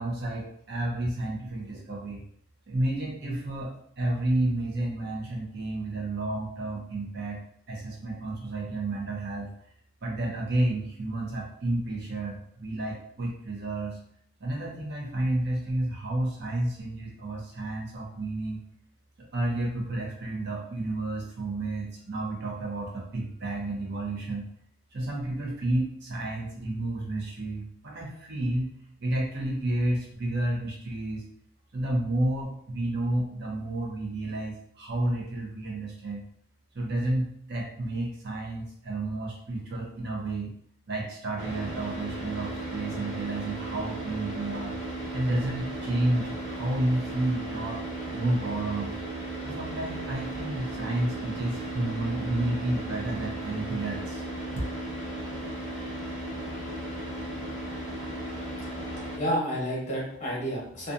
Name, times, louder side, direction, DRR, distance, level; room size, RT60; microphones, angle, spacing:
voice 1, 0.0-2.2 2.7-3.7 4.0-7.4 7.7-9.5 10.0-14.0 14.4-18.6 19.2-24.5 24.9-28.7 29.0-31.2 31.7-36.2 36.7-40.5 40.9-44.8 45.1-47.8 48.1-49.0 49.4-54.2, right 1 dB, 55° right, -2 dB, 0.7 m, -31 dB
Car / Idling, 41.4-59.2, right 2 dB, 10° right, 1.1 m, -35 dB
voice 2, 58.8-60.9, equal, 35° left, -4 dB, 0.9 m, -31 dB
2.7 x 2.4 x 2.4 m, 0.66 s
head